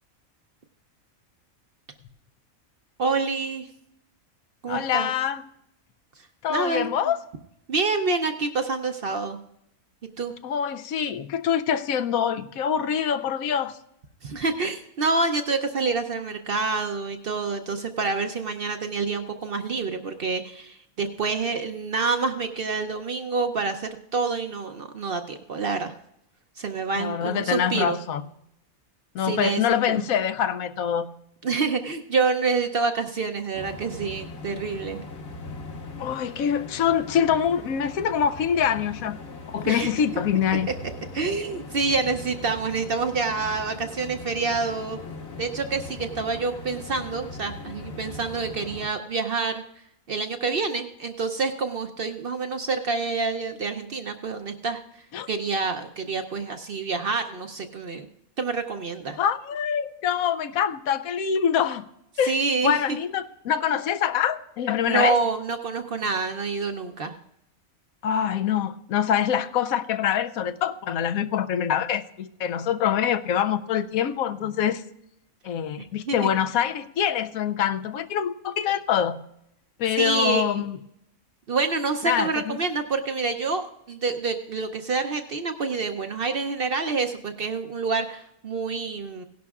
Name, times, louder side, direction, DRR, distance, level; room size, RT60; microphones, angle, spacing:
voice 1, 3.0-3.7 4.6-5.1 6.2-6.9 7.7-9.4 10.2-10.3 14.2-25.9 26.6-28.0 29.2-29.6 29.9-30.0 31.4-35.0 39.6-39.9 41.1-45.0 45.4-49.6 50.1-58.1 58.4-59.2 62.2-62.8 64.9-67.1 75.8-76.3 80.0-80.6 81.5-89.2, right 4 dB, 55° right, 7 dB, 0.7 m, -27 dB
voice 2, 4.7-5.4 6.4-7.2 10.4-13.7 27.0-28.2 29.1-31.1 36.0-39.2 39.5-40.7 55.1-55.3 59.2-61.8 62.2-62.4 62.6-65.2 68.0-74.8 75.4-79.3 79.8-80.8 82.0-82.6, left 8 dB, 80° left, 10 dB, 1.0 m, -25 dB
sound 1, 33.5-48.9, left 3 dB, 50° left, 1.3 m, -40 dB
17.0 x 11.0 x 2.4 m, 0.78 s
omnidirectional pair, 1.5 m